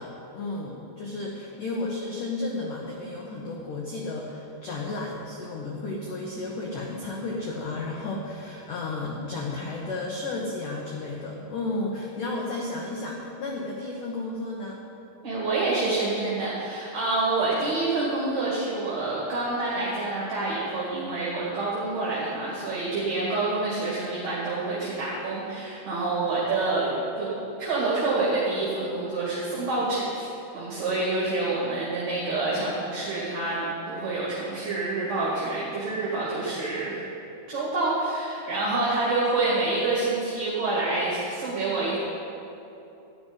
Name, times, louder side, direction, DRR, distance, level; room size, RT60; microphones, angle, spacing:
voice 1, 0.0-14.8, left 2 dB, 75° left, -2 dB, 1.9 m, -33 dB
voice 2, 15.2-26.9 27.2-27.3 27.6-30.3 30.5-37.0 37.5-42.0, right 3 dB, 45° right, -7 dB, 2.9 m, -27 dB
13.0 x 6.2 x 9.8 m, 2.9 s
omnidirectional pair, 5.4 m